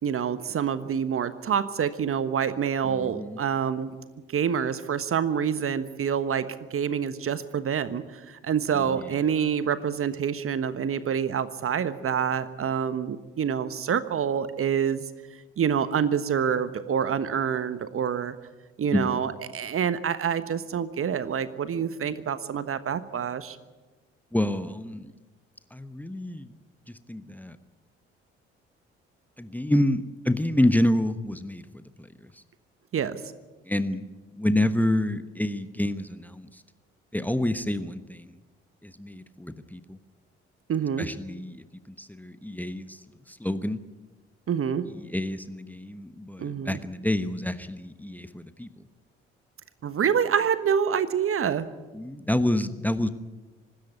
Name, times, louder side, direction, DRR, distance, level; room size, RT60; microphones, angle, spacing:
voice 1, 0.0-4.0 4.3-15.0 15.6-18.3 18.8-23.6 32.9-33.2 40.7-41.1 44.5-44.9 46.4-46.8 49.8-51.7, right 7 dB, 40° right, 14 dB, 1.3 m, -27 dB
voice 2, 2.8-3.4 8.7-9.2 18.9-19.3 24.3-25.1 25.7-26.6 26.9-27.6 29.4-32.4 33.6-34.1 34.4-36.6 37.1-38.4 38.8-40.0 41.0-43.8 44.9-48.7 51.9-53.1, left 1 dB, 5° left, 12 dB, 1.1 m, -28 dB
25.0 x 13.0 x 9.4 m, 1.2 s
figure-of-eight pair, 45°, 33 cm